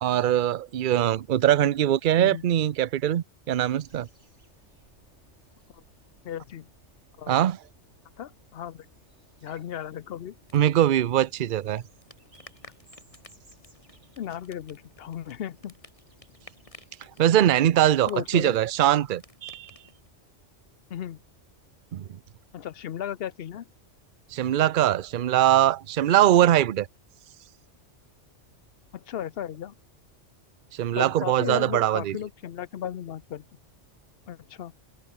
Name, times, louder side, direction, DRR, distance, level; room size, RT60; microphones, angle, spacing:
voice 1, 0.0-4.1 7.3-7.6 10.5-11.8 17.2-19.7 21.9-22.1 24.3-26.9 30.7-32.2, right 12 dB, 55° right, 0.7 m, -22 dB
sound 1, 3.8-18.5, right 1 dB, 70° right, 8.1 m, -61 dB
voice 2, 6.2-6.7 7.2-7.4 8.2-8.9 9.4-10.4 14.2-15.7 18.1-18.6 20.9-21.2 22.5-23.6 28.9-29.7 30.9-33.4 34.3-34.7, left 10 dB, 60° left, 0.9 m, -35 dB
sound 2, 10.3-20.1, left 2 dB, 30° left, 3.0 m, -55 dB
omnidirectional pair, 1.2 m